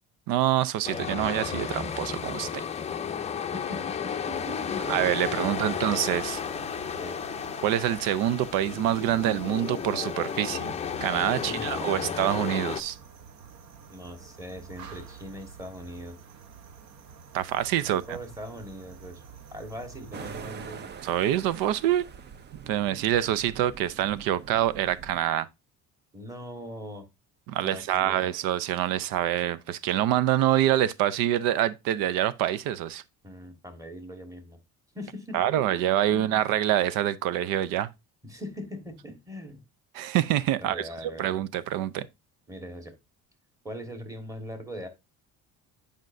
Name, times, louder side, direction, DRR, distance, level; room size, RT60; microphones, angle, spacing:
voice 1, 0.3-2.6 4.9-6.4 7.6-10.7 11.0-13.0 17.3-18.2 21.0-22.0 22.7-25.5 27.5-33.0 35.3-37.9 39.9-42.1, right 12 dB, 80° right, 0.6 m, -26 dB
sound 1, 0.8-12.8, left 7 dB, 20° left, 0.5 m, -33 dB
voice 2, 3.5-5.9 6.9-7.2 11.4-12.1 13.9-16.2 17.8-19.2 19.5-20.9 26.1-27.0 27.6-28.3 33.2-34.6 34.9-35.4 36.1-36.4 38.2-39.6 40.7-41.4 42.5-42.9 43.6-44.9, equal, 10° right, 1.4 m, -41 dB
sound 2, 4.3-20.5, right 6 dB, 55° right, 1.0 m, -49 dB
sound 3, 20.1-25.2, right 7 dB, 30° right, 0.5 m, -44 dB
9.6 x 5.1 x 2.6 m
cardioid pair, 135°, 34 cm